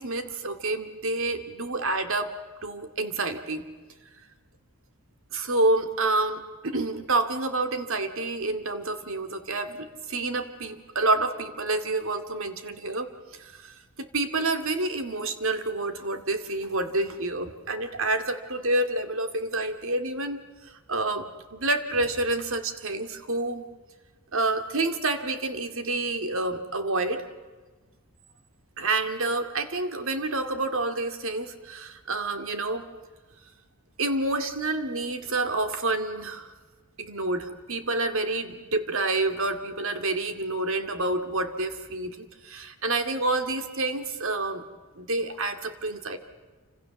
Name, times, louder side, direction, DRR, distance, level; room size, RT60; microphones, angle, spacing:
voice 1, 0.0-2.3 2.6-3.6 5.3-13.1 13.4-20.4 20.9-23.7 24.3-27.2 28.8-32.9 34.0-36.5 37.0-44.6 45.0-46.2, right 2 dB, 60° right, 8 dB, 2.3 m, -28 dB
28.5 x 26.0 x 7.2 m, 1.3 s
head